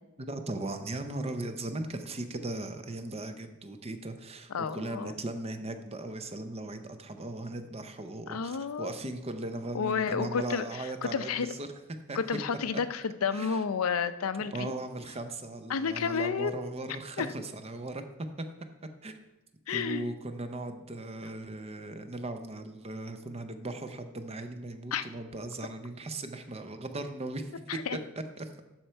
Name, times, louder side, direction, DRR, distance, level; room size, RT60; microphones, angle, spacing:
voice 1, 0.2-12.2 13.3-13.6 14.4-18.0 18.4-18.5 19.0-19.1 19.7-27.5 28.4-28.6, right 2 dB, 30° right, 8 dB, 0.6 m, -38 dB
voice 2, 4.5-5.1 8.3-8.9 9.7-10.6 11.0-11.5 12.1-14.7 15.7-16.6 17.2-17.3 19.7-20.1 24.9-25.0 27.7-28.0, left 6 dB, 85° left, 12 dB, 0.5 m, -31 dB
12.0 x 4.5 x 4.4 m, 1.0 s
head